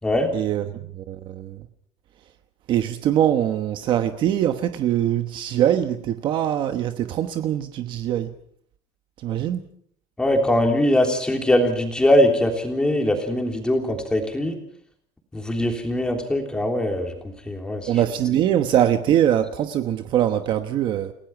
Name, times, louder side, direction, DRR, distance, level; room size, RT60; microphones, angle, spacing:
voice 1, 0.3-1.7 2.7-8.3 9.2-9.6 17.9-21.1, right 11 dB, 40° right, 1.1 m, -22 dB
voice 2, 10.2-14.6 15.3-17.1 17.4-17.9, left 1 dB, 5° left, 3.4 m, -21 dB
29.5 x 17.0 x 5.9 m
cardioid pair, 170°, 12 cm